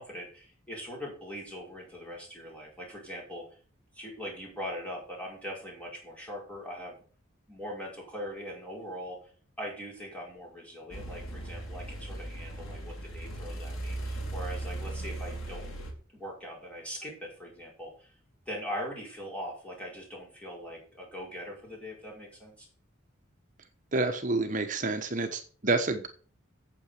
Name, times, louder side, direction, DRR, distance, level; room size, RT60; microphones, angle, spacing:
voice 1, 0.0-3.6 3.9-7.0 7.5-9.3 9.6-15.7 16.1-18.1 18.4-22.7, equal, 5° left, -3 dB, 5.1 m, -41 dB
sound 1, 10.9-15.9, right 1 dB, 80° left, 3.2 m, -38 dB
voice 2, 23.9-26.1, right 3 dB, 35° right, 6 dB, 1.1 m, -28 dB
9.0 x 7.9 x 6.6 m, 0.41 s
head